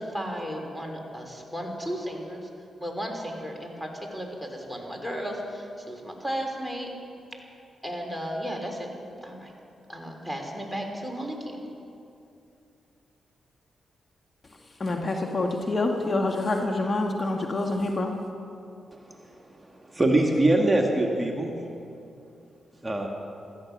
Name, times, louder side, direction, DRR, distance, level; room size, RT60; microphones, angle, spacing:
voice 1, 0.0-2.5 2.8-6.9 7.8-8.9 9.2-9.5 9.9-11.6, equal, ahead, 2 dB, 3.7 m, -34 dB
voice 2, 14.8-18.1, left 2 dB, 40° left, 2 dB, 1.5 m, -26 dB
voice 3, 19.8-21.6 22.8-23.1, right 2 dB, 20° right, 1 dB, 1.9 m, -23 dB
16.5 x 13.5 x 6.2 m, 2.6 s
supercardioid pair, 55°, 0 cm